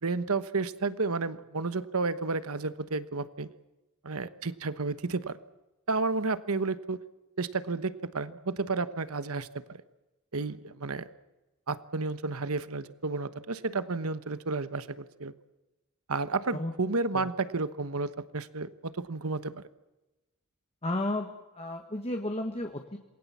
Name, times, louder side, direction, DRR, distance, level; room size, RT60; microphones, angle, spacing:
voice 1, 0.0-3.5 4.0-5.4 5.9-7.0 7.4-9.6 10.3-11.1 11.7-15.3 16.1-19.6, right 3 dB, 75° right, 13 dB, 1.2 m, -31 dB
voice 2, 20.8-23.0, left 1 dB, 30° left, 4 dB, 1.7 m, -33 dB
27.5 x 21.0 x 7.4 m, 1.1 s
head